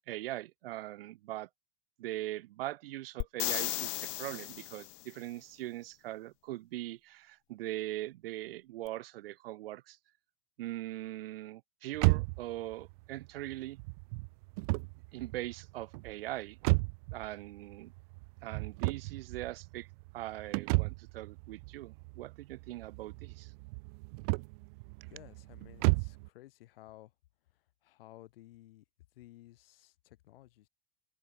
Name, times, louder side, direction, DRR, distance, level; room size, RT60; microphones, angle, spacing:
voice 1, 0.0-1.5 2.0-10.0 10.6-13.8 15.1-16.6 17.1-17.9 18.4-19.9 20.1-23.5, right 16 dB, 55° right, 0.9 m, -41 dB
sound 1, 3.2-5.0 8.9-9.0, left 35 dB, 25° left, 0.7 m, -35 dB
sound 2, 11.9-26.3, right 30 dB, 35° right, 1.4 m, -34 dB
voice 2, 25.1-27.1 27.8-28.8 29.1-30.7, left 16 dB, 55° left, 7.8 m, -55 dB
open air
supercardioid pair, 180°, 34 cm